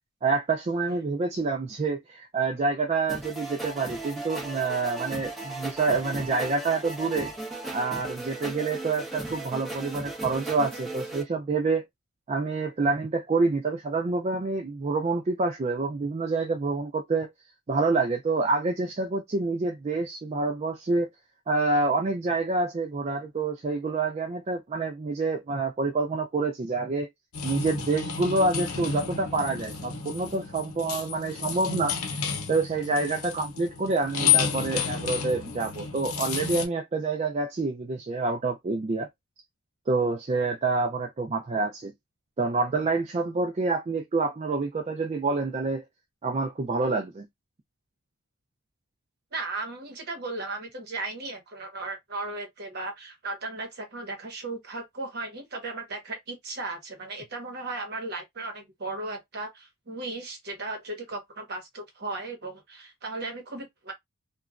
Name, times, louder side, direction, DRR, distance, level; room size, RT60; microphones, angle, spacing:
voice 1, 0.2-7.3 7.7-11.8 12.3-17.3 17.7-21.1 21.5-27.1 27.4-32.0 32.5-39.1 39.9-41.9 42.4-45.9 46.2-47.2, right 3 dB, 30° right, 0.3 m, -27 dB
sound 1, 3.1-11.2, right 2 dB, ahead, 1.0 m, -37 dB
sound 2, 27.3-36.7, left 7 dB, 70° left, 0.7 m, -30 dB
voice 2, 49.3-63.9, right 3 dB, 45° right, 1.0 m, -36 dB
2.9 x 2.2 x 2.4 m
head